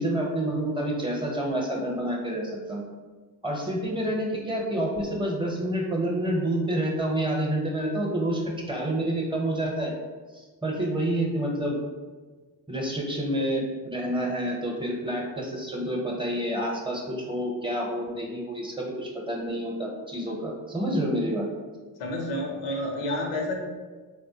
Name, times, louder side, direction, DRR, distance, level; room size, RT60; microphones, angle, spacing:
voice 1, 0.0-2.8 3.4-9.9 10.3-11.8 12.7-21.5, right 1 dB, 10° right, -1 dB, 0.7 m, -28 dB
voice 2, 22.0-23.5, left 1 dB, 90° left, 1 dB, 0.7 m, -29 dB
3.3 x 2.1 x 2.7 m, 1.4 s
cardioid pair, 70°, 41 cm